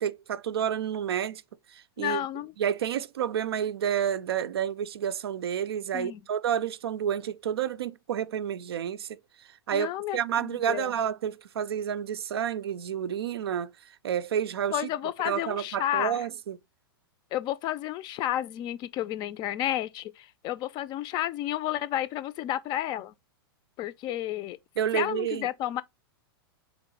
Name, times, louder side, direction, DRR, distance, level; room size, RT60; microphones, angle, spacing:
voice 1, 0.0-1.4 1.7-2.2 2.6-9.2 9.5-13.7 14.0-14.8 15.2-16.6 24.8-25.5, right 9 dB, 75° right, 0.4 m, -30 dB
voice 2, 2.0-2.5 5.9-6.2 9.7-10.9 14.7-16.3 17.3-23.1 23.8-24.6 24.9-25.8, left 13 dB, 35° left, 0.4 m, -31 dB
4.0 x 3.5 x 3.8 m
hypercardioid pair, 110°, 13 cm